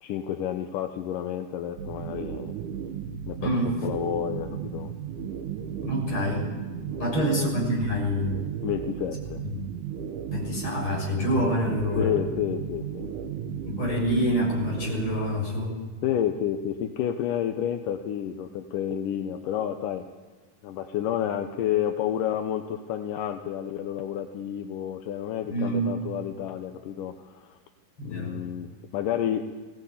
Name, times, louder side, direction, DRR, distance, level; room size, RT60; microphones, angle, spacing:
voice 1, 0.0-2.5 3.3-4.9 6.9-7.0 8.6-9.4 12.0-13.1 16.0-20.0 20.6-27.6 28.1-29.4, left 10 dB, 80° left, 5 dB, 2.5 m, -30 dB
sound 1, 1.8-15.5, right 8 dB, 75° right, 2.5 m, -35 dB
voice 2, 3.4-3.8 5.8-6.4 7.0-8.4 10.3-12.1 13.7-15.7 25.5-25.9 28.0-28.3, equal, 40° left, -2 dB, 7.4 m, -26 dB
22.0 x 17.0 x 8.5 m, 1.4 s
omnidirectional pair, 3.8 m